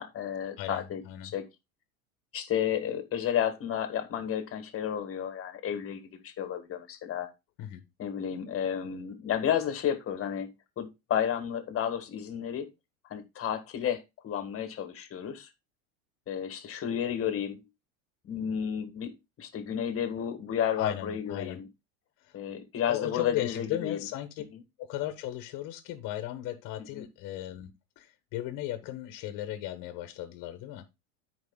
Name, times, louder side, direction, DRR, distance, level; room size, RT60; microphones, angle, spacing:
voice 1, 0.0-1.0 1.3-1.4 2.3-7.3 8.0-10.5 10.8-12.7 13.1-15.5 16.3-17.6 18.2-21.7 22.3-24.0 24.5-24.6 26.8-27.1, left 9 dB, 30° left, 1.7 m, -32 dB
voice 2, 0.6-1.3 7.6-7.8 20.8-21.6 22.2-22.4 22.9-24.4 24.8-27.7 28.0-30.9, left 13 dB, 50° left, 1.3 m, -36 dB
13.5 x 4.9 x 2.3 m
supercardioid pair, 110°, 42 cm